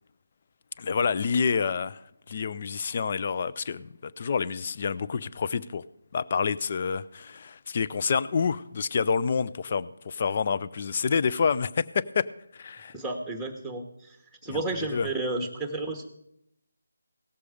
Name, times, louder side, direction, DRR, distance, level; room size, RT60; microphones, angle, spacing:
voice 1, 0.8-2.0 2.3-5.8 6.1-12.3 12.5-12.9 14.5-15.1, left 5 dB, 35° left, 16 dB, 0.4 m, -28 dB
voice 2, 12.9-14.2 14.4-16.0, right 2 dB, ahead, 5 dB, 1.1 m, -32 dB
17.5 x 6.9 x 5.0 m, 0.79 s
figure-of-eight pair, 165°, 0 cm